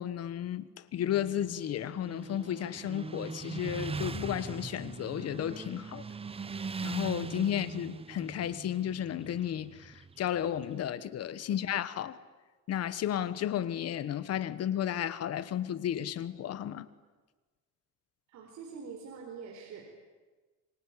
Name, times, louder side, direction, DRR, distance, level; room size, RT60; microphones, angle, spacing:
voice 1, 0.0-6.0 6.8-12.2 12.7-16.9, left 10 dB, 55° left, 1.3 m, -33 dB
Motorcycle, 1.0-10.7, right 4 dB, 20° right, 0.9 m, -41 dB
voice 2, 18.3-19.8, right 5 dB, 65° right, 4.7 m, -44 dB
25.5 x 23.5 x 9.9 m
cardioid pair, 145°, 30 cm